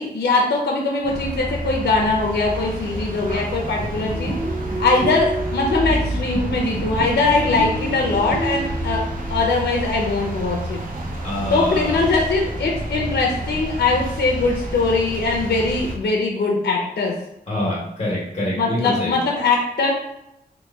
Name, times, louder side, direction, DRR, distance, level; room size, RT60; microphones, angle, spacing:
voice 1, 0.0-4.3 4.8-9.0 9.3-10.8 11.5-17.1 18.5-19.9, left 3 dB, 85° left, -1 dB, 0.5 m, -21 dB
sound 1, 1.0-16.0, right 1 dB, 55° right, 0.6 m, -29 dB
sound 2, 4.1-9.4, right 2 dB, 15° right, 0.8 m, -29 dB
voice 2, 11.2-12.0 17.5-19.1, left 1 dB, 40° left, -6 dB, 1.1 m, -26 dB
3.0 x 2.2 x 3.4 m, 0.83 s
wide cardioid pair, 95°, 17 cm